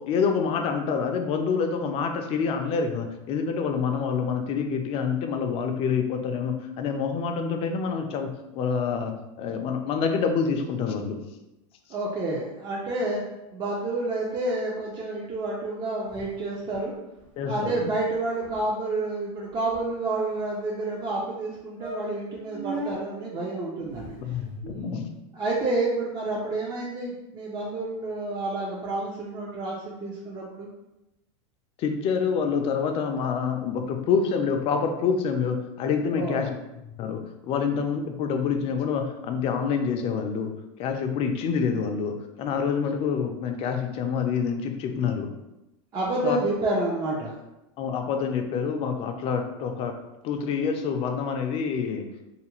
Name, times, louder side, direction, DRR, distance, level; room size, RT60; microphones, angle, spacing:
voice 1, 0.0-11.2 17.4-17.9 24.2-25.1 31.8-36.5 37.0-40.5 40.8-42.1 42.4-45.3 46.2-46.4 47.8-50.0 50.2-52.0, left 6 dB, 35° left, 4 dB, 0.4 m, -27 dB
voice 2, 11.9-13.2 13.5-16.9 17.4-24.2 24.6-24.9 25.3-30.7 36.0-36.5 45.9-47.3, right 2 dB, 25° right, -4 dB, 0.4 m, -29 dB
sound 1, 16.1-16.9 17.2-17.3 17.6-17.8 18.1-18.2 18.4-18.7 19.3-20.3 21.0-21.1 21.4-21.5 21.8-23.0 23.8-24.8, right 2 dB, 45° right, 0.9 m, -40 dB
2.6 x 2.4 x 2.9 m, 0.94 s
supercardioid pair, 135°, 17 cm